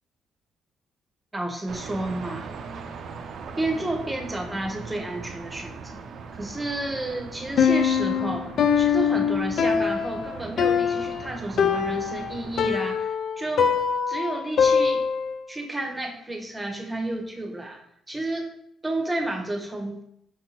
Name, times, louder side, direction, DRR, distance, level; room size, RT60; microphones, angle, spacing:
voice 1, 1.3-2.5 3.6-6.0 6.3-13.1 13.4-13.7 14.1-15.0 15.5-17.8 18.1-18.5 18.8-20.0, right 1 dB, 15° right, 3 dB, 0.8 m, -31 dB
sound 1, 1.7-12.8, right 5 dB, 65° right, 0.4 m, -40 dB
Piano, 7.6-15.4, left 7 dB, 65° left, 0.3 m, -23 dB
5.2 x 2.6 x 2.9 m, 0.74 s
cardioid pair, 90°, 0 cm